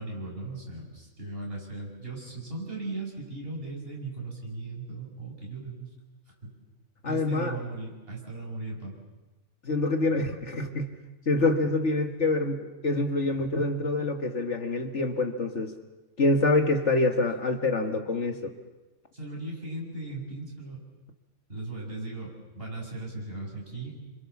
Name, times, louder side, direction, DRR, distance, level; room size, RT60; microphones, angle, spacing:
voice 1, 0.0-5.9 6.4-6.6 7.0-8.9 19.1-20.9 21.5-24.0, right 2 dB, 40° right, -2 dB, 7.5 m, -38 dB
voice 2, 7.0-7.6 9.6-10.9 11.3-15.7 16.2-18.5, left 2 dB, 55° left, 6 dB, 1.9 m, -26 dB
29.5 x 25.5 x 7.1 m, 1.1 s
omnidirectional pair, 1.5 m